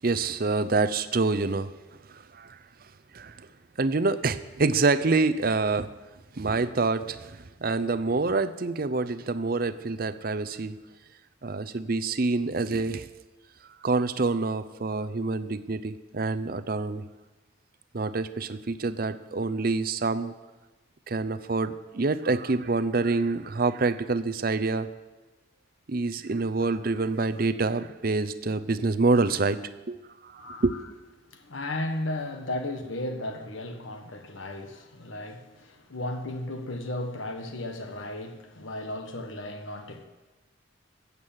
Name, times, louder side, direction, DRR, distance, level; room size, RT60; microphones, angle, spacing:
voice 1, 0.0-1.7 2.1-2.6 3.1-3.5 3.8-5.9 6.3-10.8 11.4-13.1 13.8-17.0 17.9-20.3 21.1-24.9 25.9-29.6 29.9-30.0 30.2-30.7, right 3 dB, 45° right, 0.6 m, -26 dB
voice 2, 30.4-30.8 31.3-40.0, left 1 dB, 70° left, 1.5 m, -35 dB
14.0 x 8.3 x 7.4 m
head